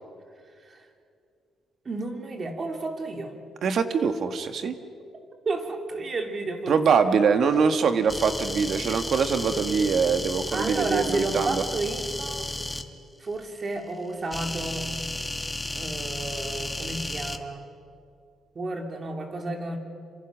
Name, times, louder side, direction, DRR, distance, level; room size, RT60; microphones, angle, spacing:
voice 1, 1.8-3.4 5.4-6.8 10.5-12.4 13.2-14.9 15.7-17.6 18.5-19.8, right 3 dB, 35° right, 4 dB, 3.0 m, -31 dB
voice 2, 3.6-4.8 6.7-11.6, right 6 dB, 55° right, 8 dB, 1.6 m, -23 dB
sound 1, 8.1-12.8 14.3-17.4, left 1 dB, 10° left, 1.4 m, -33 dB
27.5 x 26.0 x 6.3 m, 2.4 s
cardioid pair, 130°, 0 cm